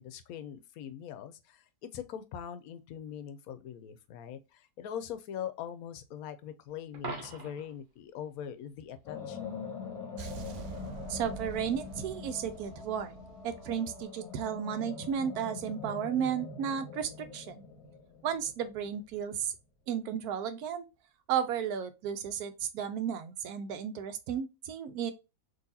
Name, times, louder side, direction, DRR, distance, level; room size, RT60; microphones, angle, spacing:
voice 1, 0.0-9.5, left 9 dB, 80° left, 1.0 m, -42 dB
Coin (dropping), 6.9-7.8 13.9-14.0, right 3 dB, 40° right, 1.0 m, -41 dB
sound 1, 9.0-19.2, left 5 dB, 25° left, 1.0 m, -44 dB
sound 2, 10.2-14.3, right 6 dB, 65° right, 0.8 m, -46 dB
voice 2, 11.1-13.2 13.4-17.7 18.2-19.5 19.9-20.8 21.3-25.1, right 8 dB, 85° right, 1.1 m, -33 dB
3.9 x 2.8 x 2.6 m
omnidirectional pair, 1.5 m